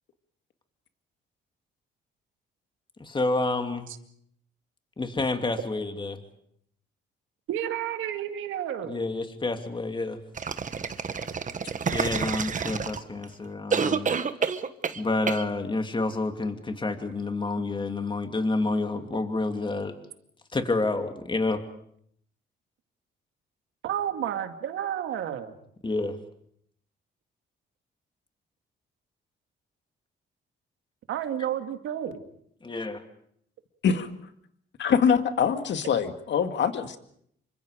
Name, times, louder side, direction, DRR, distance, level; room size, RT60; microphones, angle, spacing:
voice 1, 3.0-3.9 5.0-6.2 8.8-10.2 11.9-14.2 14.9-19.9 20.5-21.6 25.8-26.2 32.6-33.0, left 2 dB, 25° left, 6 dB, 2.8 m, -29 dB
voice 2, 7.5-9.0 23.8-25.6 31.1-32.2, right 10 dB, 85° right, 7 dB, 2.1 m, -31 dB
sound 1, 10.4-13.2 13.7-15.0 15.3-15.4, right 6 dB, 40° right, 1.4 m, -28 dB
voice 3, 34.8-37.0, left 7 dB, 65° left, 8 dB, 2.1 m, -24 dB
28.0 x 25.0 x 5.1 m, 0.68 s
cardioid pair, 90°, 20 cm